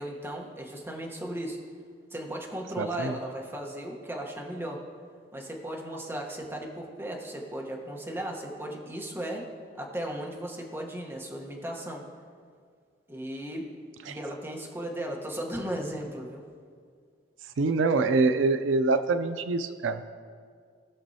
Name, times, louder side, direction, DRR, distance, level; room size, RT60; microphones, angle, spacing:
voice 1, 0.0-1.6 2.1-4.8 5.3-9.5 9.8-12.1 13.1-13.7 14.0-16.4, right 1 dB, 10° right, 0 dB, 1.0 m, -36 dB
voice 2, 2.8-3.1 14.1-14.2 17.6-20.0, right 3 dB, 90° right, 10 dB, 0.4 m, -25 dB
17.5 x 6.1 x 2.8 m, 2.1 s
head